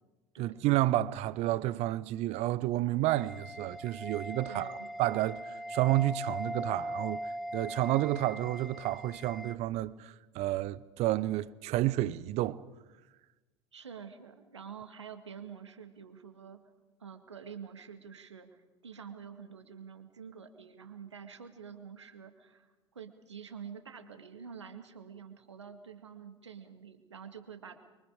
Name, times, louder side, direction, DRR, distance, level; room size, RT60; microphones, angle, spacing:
voice 1, 0.4-4.7 5.0-12.6, right 15 dB, 50° right, 0.8 m, -30 dB
sound 1, 3.0-9.5, equal, ahead, 1.7 m, -40 dB
voice 2, 4.5-4.9 13.7-16.6 17.0-27.8, right 7 dB, 80° right, 2.0 m, -47 dB
29.5 x 24.0 x 5.0 m
figure-of-eight pair, 70°, 15 cm